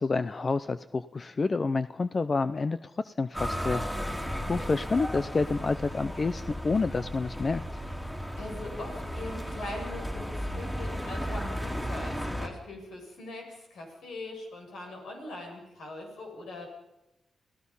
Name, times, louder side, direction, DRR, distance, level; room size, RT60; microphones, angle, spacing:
voice 1, 0.0-7.6, left 4 dB, 40° left, 12 dB, 0.6 m, -29 dB
sound 1, 3.3-12.5, equal, 10° left, 3.7 m, -35 dB
voice 2, 8.4-16.7, left 2 dB, 85° left, 1 dB, 7.5 m, -41 dB
28.5 x 17.0 x 5.6 m, 0.91 s
cardioid pair, 85°, 0 cm